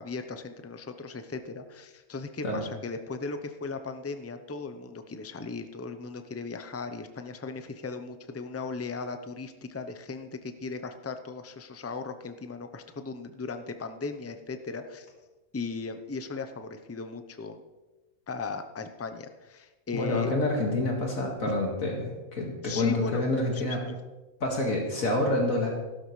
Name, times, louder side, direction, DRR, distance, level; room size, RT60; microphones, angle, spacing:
voice 1, 0.0-15.1 15.5-17.6 18.3-20.3 22.6-23.2 23.5-24.0, left 4 dB, 25° left, 8 dB, 0.3 m, -37 dB
voice 2, 19.9-23.8 24.4-25.7, left 2 dB, 65° left, -1 dB, 2.3 m, -27 dB
15.5 x 12.5 x 3.2 m, 1.1 s
omnidirectional pair, 1.5 m